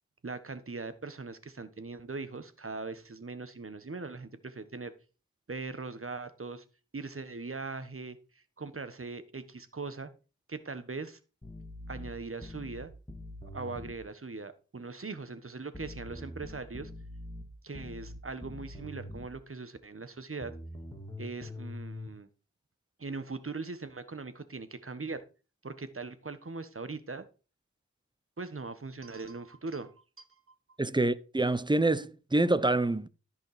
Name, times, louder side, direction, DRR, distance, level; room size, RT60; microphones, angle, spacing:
voice 1, 0.2-4.9 5.5-6.6 6.9-10.1 10.5-11.2 11.9-12.9 13.5-16.9 17.6-20.5 21.2-22.3 23.0-25.2 25.6-27.3 28.4-30.3, right 3 dB, 45° right, 1.4 m, -40 dB
sound 1, 11.4-14.0 15.7-19.4 20.4-22.1, left 1 dB, 15° left, 2.6 m, -44 dB
voice 2, 30.8-33.1, right 2 dB, 15° right, 0.8 m, -26 dB
14.0 x 5.6 x 5.0 m
cardioid pair, 45°, 30 cm